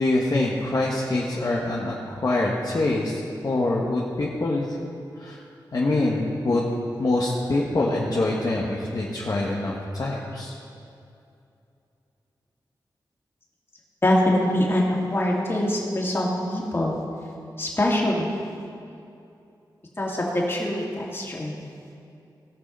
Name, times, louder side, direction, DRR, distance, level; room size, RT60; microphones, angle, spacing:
voice 1, 0.0-4.6 5.2-5.4 5.7-6.6 7.0-10.5, left 2 dB, 50° left, -4 dB, 1.4 m, -25 dB
voice 2, 14.0-17.0 17.6-18.3 20.0-21.5, left 1 dB, 30° left, -4 dB, 2.7 m, -24 dB
18.0 x 6.4 x 5.5 m, 2.6 s
wide cardioid pair, 75°, 8 cm